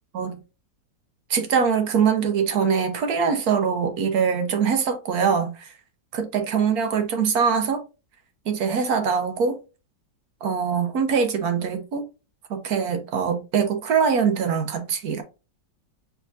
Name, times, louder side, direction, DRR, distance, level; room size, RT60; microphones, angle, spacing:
voice 1, 1.3-5.7 6.1-7.8 8.5-9.6 10.4-12.0 12.5-15.2, right 6 dB, 65° right, 1.2 m, -23 dB
4.8 x 3.5 x 2.5 m
omnidirectional pair, 1.9 m